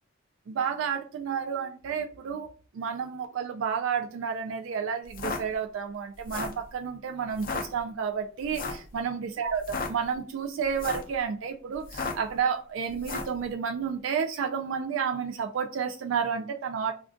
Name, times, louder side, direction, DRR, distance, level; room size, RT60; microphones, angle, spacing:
voice 1, 0.5-2.5 2.7-16.9, right 6 dB, 70° right, 0.3 m, -31 dB
sound 1, 5.0-5.4 6.2-6.6 7.3-7.6 8.5-8.9 9.5-9.9 10.7-11.1 11.8-12.3 13.0-13.4, left 4 dB, 45° left, 0.5 m, -33 dB
2.5 x 2.3 x 3.5 m
head